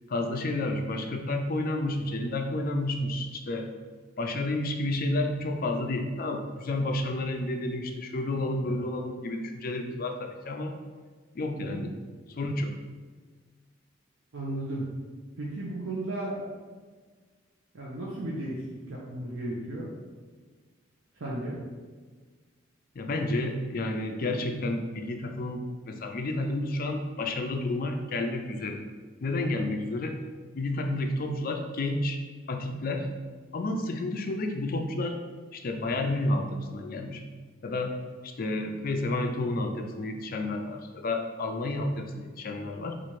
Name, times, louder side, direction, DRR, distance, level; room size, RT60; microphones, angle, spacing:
voice 1, 0.1-3.7 4.2-10.8 11.3-11.9 12.4-12.8 23.0-28.8 29.2-30.2 30.5-32.2 32.5-33.1 33.5-35.2 35.5-37.2 37.6-37.9 38.2-42.9, left 2 dB, 50° left, 4 dB, 0.4 m, -30 dB
voice 2, 14.3-14.9 15.4-16.5 17.7-19.9 21.2-21.6, right 1 dB, 90° right, -5 dB, 0.7 m, -34 dB
4.2 x 2.5 x 4.6 m, 1.5 s
head